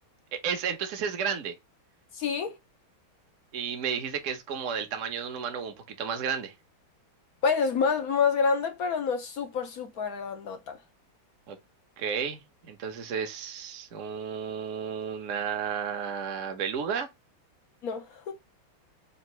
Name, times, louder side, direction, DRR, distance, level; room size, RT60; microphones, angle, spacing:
voice 1, 0.3-1.5 3.5-6.5 11.5-11.6 12.0-12.4 12.7-17.1, right 7 dB, 55° right, 0.9 m, -32 dB
voice 2, 2.1-2.6 7.4-10.8 17.8-18.3, left 5 dB, 70° left, 0.8 m, -28 dB
4.1 x 2.5 x 4.6 m
omnidirectional pair, 2.3 m